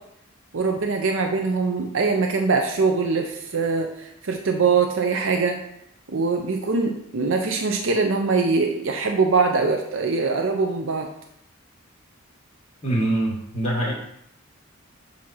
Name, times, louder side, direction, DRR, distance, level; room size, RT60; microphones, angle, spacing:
voice 1, 0.5-5.6 6.1-11.1, right 4 dB, 65° right, 3 dB, 0.6 m, -22 dB
voice 2, 12.8-13.9, right 1 dB, 30° left, -4 dB, 2.1 m, -24 dB
7.7 x 2.8 x 5.5 m, 0.76 s
head